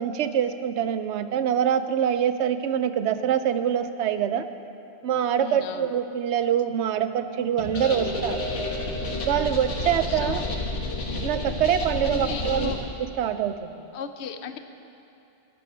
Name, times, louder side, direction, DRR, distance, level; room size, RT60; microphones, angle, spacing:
voice 1, 0.0-4.5 5.0-8.4 9.1-10.4 11.1-12.7 13.2-13.7, right 9 dB, 75° right, 11 dB, 0.9 m, -25 dB
voice 2, 5.4-5.9 10.1-10.5 12.0-12.8 13.9-14.6, left 6 dB, 70° left, 9 dB, 0.9 m, -35 dB
sound 1, 7.6-12.8, left 2 dB, 90° left, 1.6 m, -30 dB
12.0 x 9.2 x 6.1 m, 2.7 s
omnidirectional pair, 1.2 m